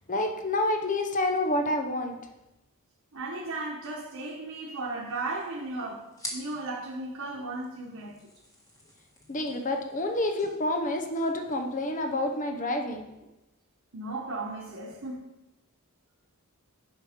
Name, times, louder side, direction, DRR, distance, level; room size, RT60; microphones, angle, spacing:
voice 1, 0.1-2.2 9.3-13.1, left 1 dB, 35° left, 0.8 m, -28 dB
voice 2, 3.1-8.2 13.9-15.3, right 2 dB, 70° right, 1.3 m, -35 dB
sound 1, 4.8-12.4, left 1 dB, 15° left, 1.5 m, -48 dB
8.9 x 5.7 x 5.1 m
head